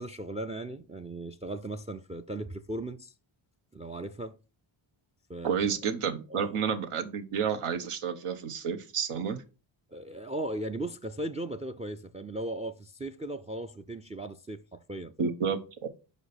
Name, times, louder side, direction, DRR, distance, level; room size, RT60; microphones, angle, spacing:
voice 1, 0.0-3.1 3.7-4.4 5.3-5.7 6.3-6.6 9.9-15.3, right 1 dB, 15° right, 0.3 m, -37 dB
voice 2, 5.4-9.4 15.2-15.9, right 7 dB, 85° right, 1.1 m, -30 dB
5.5 x 5.0 x 4.1 m
cardioid pair, 100°, 49 cm